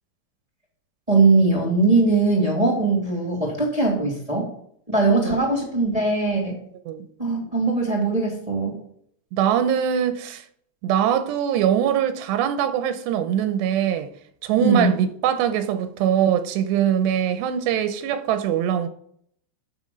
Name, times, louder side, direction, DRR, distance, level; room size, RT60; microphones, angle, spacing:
voice 1, 1.1-4.5 4.9-6.6 7.2-8.8 14.6-14.9, right 3 dB, 15° right, 1.4 m, -20 dB
voice 2, 9.3-10.4 10.8-14.1 14.4-18.9, right 9 dB, 85° right, 3.0 m, -22 dB
11.5 x 7.1 x 5.4 m
omnidirectional pair, 5.0 m